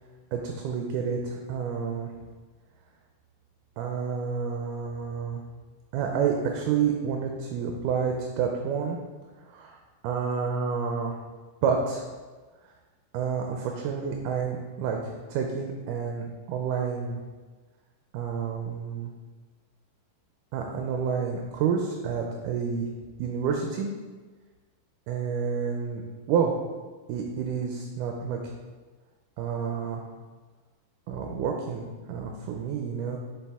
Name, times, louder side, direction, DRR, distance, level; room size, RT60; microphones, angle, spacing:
voice 1, 0.3-2.1 3.8-5.4 5.9-9.0 9.5-9.8 10.0-11.1 11.6-12.0 13.1-17.2 18.1-19.1 20.5-22.9 23.2-23.9 25.1-26.0 26.3-26.5 27.1-28.4 29.4-30.0 31.1-33.2, right 6 dB, 80° right, 2 dB, 2.1 m, -29 dB
7.1 x 5.3 x 3.5 m, 1.3 s
omnidirectional pair, 3.8 m